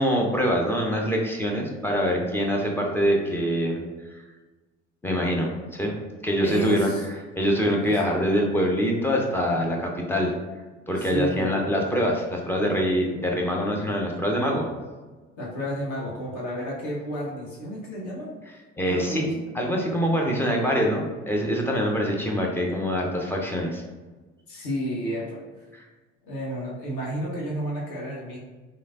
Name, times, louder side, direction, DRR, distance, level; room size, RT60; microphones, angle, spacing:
voice 1, 0.0-3.8 5.0-5.9 6.2-6.9 7.4-10.3 10.9-14.7 18.8-19.3 19.5-23.8 25.7-25.8, equal, 5° left, -1 dB, 0.3 m, -24 dB
voice 2, 6.4-7.0 7.6-7.9 11.0-11.7 15.4-18.3 18.9-19.3 24.5-25.4 26.3-28.4, right 1 dB, 60° left, -4 dB, 0.9 m, -31 dB
3.1 x 2.6 x 2.3 m, 1.2 s
figure-of-eight pair, 60°, 37 cm